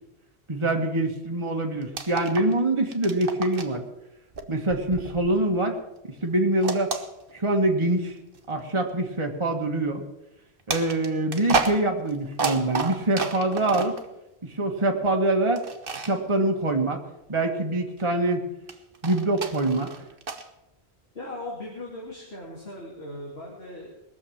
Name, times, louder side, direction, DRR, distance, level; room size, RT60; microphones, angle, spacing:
voice 1, 0.5-3.8 4.5-5.7 6.2-6.9 7.3-8.1 8.5-10.0 10.7-14.0 14.4-15.6 16.1-17.0 17.3-18.4 19.0-20.1, right 2 dB, 30° right, 2 dB, 1.6 m, -24 dB
sound 1, 1.8-2.6 2.9-3.8 4.3-5.8 6.6-7.7 8.3-8.5 10.7-14.0 15.6-16.2 18.7-20.5, right 4 dB, 55° right, 1.3 m, -31 dB
voice 2, 21.1-24.0, left 1 dB, 70° left, -3 dB, 2.8 m, -38 dB
20.5 x 7.1 x 7.2 m, 0.90 s
omnidirectional pair, 1.1 m